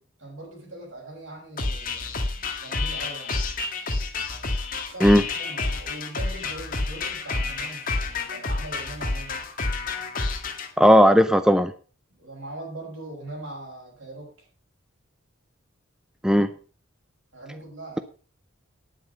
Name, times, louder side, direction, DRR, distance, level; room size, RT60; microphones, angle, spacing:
voice 1, 0.2-3.4 4.9-9.5 12.1-14.5 17.3-18.0, right 2 dB, 70° right, 0 dB, 5.8 m, -41 dB
sound 1, 1.6-10.7, left 3 dB, 45° left, 1.8 m, -29 dB
voice 2, 10.8-11.7 16.2-16.5, equal, 5° right, 9 dB, 0.5 m, -16 dB
10.0 x 9.1 x 5.2 m, 0.38 s
head